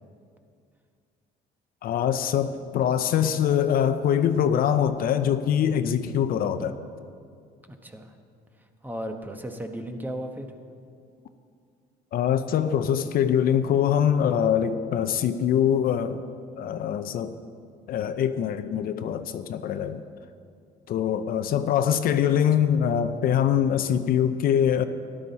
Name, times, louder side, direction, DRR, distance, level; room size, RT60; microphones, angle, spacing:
voice 1, 1.8-6.8 12.1-16.2 16.6-17.3 17.9-20.0 20.9-24.8, left 9 dB, 60° left, 10 dB, 0.6 m, -23 dB
voice 2, 7.7-8.1 8.8-10.5, equal, 10° right, 5 dB, 1.0 m, -35 dB
13.5 x 11.5 x 4.2 m, 2.3 s
cardioid pair, 110°, 17 cm